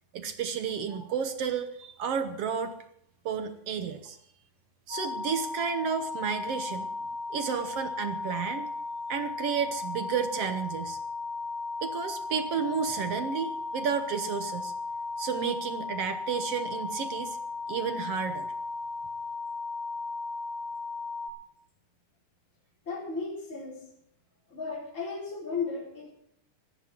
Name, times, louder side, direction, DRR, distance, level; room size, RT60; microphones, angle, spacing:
voice 1, 0.1-2.8 3.2-4.2 4.9-6.9 7.3-8.7 9.1-11.0 11.8-14.7 15.2-17.4 17.7-18.5, right 7 dB, 65° right, 8 dB, 1.6 m, -31 dB
sound 1, 4.9-21.3, left 3 dB, 10° right, 4.1 m, -36 dB
voice 2, 22.8-23.9 24.5-26.1, left 4 dB, 20° left, -3 dB, 4.4 m, -35 dB
17.5 x 13.5 x 4.5 m, 0.70 s
omnidirectional pair, 3.7 m